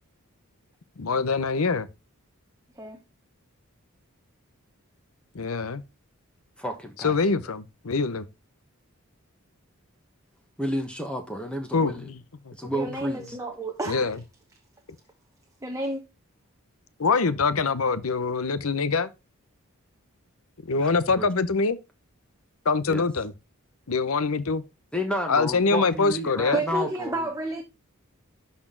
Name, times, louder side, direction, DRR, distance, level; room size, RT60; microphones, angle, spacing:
voice 1, 1.0-1.9 5.3-5.8 7.0-8.3 11.7-12.2 12.5-12.6 13.9-14.2 17.0-19.1 20.6-21.8 22.6-23.3 23.9-24.6 25.3-26.6, left 4 dB, 75° left, 0.8 m, -24 dB
voice 2, 6.6-7.1 10.6-12.1 12.5-13.4 20.8-21.3 22.9-23.0 24.9-27.3, equal, 5° left, 1.3 m, -31 dB
voice 3, 12.7-14.1 15.6-16.0 26.5-27.6, right 2 dB, 15° right, 0.9 m, -31 dB
12.0 x 4.3 x 3.8 m
head